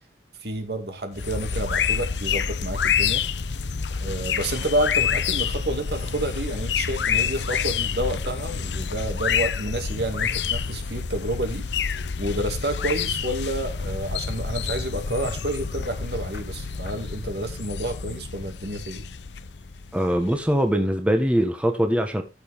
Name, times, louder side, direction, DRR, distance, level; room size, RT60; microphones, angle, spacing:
voice 1, 0.4-3.2 4.0-19.1, right 1 dB, 65° right, 2.4 m, -29 dB
sound 1, 1.1-20.6, left 6 dB, 80° left, 0.7 m, -28 dB
voice 2, 19.9-22.2, equal, 5° right, 1.3 m, -22 dB
14.0 x 6.4 x 3.6 m
head